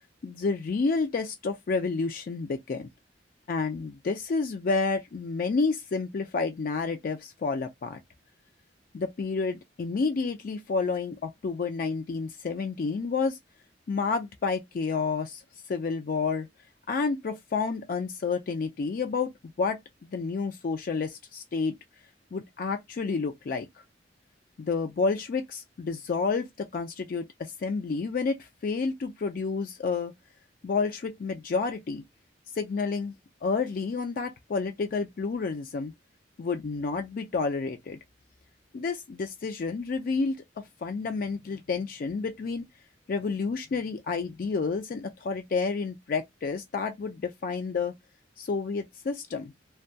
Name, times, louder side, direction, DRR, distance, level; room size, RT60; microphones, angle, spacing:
voice 1, 0.2-2.9 3.5-8.0 8.9-13.4 13.9-15.4 15.7-16.5 16.9-19.3 19.6-21.7 22.3-23.7 24.6-30.1 30.6-32.0 32.6-33.1 33.4-35.9 36.4-38.0 38.7-40.4 40.8-42.6 43.1-47.9 48.4-49.5, left 4 dB, 50° left, 0.4 m, -30 dB
2.2 x 2.2 x 2.6 m
head